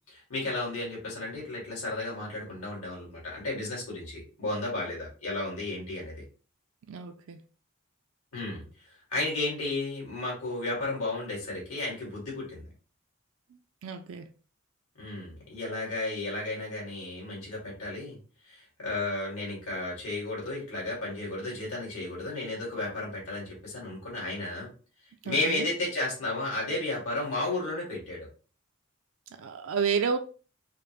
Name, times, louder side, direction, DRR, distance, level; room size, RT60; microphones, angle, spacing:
voice 1, 0.1-6.2 8.3-8.6 9.1-12.7 15.0-18.2 18.4-24.7 25.2-28.3, left 2 dB, 80° left, 2.1 m, -33 dB
voice 2, 6.9-7.4 13.8-14.3 25.2-25.7 29.3-30.2, right 6 dB, 65° right, 0.4 m, -31 dB
4.9 x 2.1 x 2.9 m
head